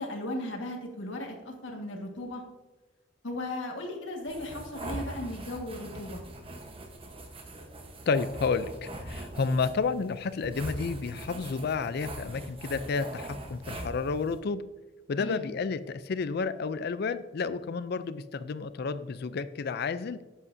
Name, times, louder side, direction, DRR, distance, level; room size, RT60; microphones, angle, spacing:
voice 1, 0.0-2.4 3.2-6.2 15.2-15.5, left 1 dB, 80° left, 1 dB, 1.7 m, -36 dB
sound 1, 4.2-14.4, right 1 dB, 30° right, 1.1 m, -42 dB
voice 2, 8.1-14.6 15.1-20.2, left 4 dB, 55° left, 14 dB, 0.4 m, -31 dB
10.5 x 8.3 x 2.7 m, 1.2 s
head